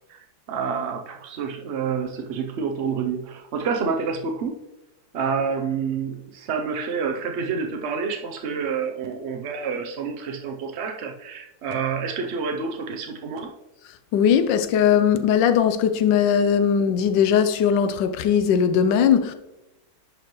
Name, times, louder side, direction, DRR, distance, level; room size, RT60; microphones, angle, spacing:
voice 1, 0.1-4.6 5.1-13.5, right 5 dB, 70° right, 0.6 m, -28 dB
voice 2, 14.1-19.3, left 8 dB, 80° left, 1.3 m, -19 dB
10.5 x 5.2 x 3.0 m
omnidirectional pair, 2.0 m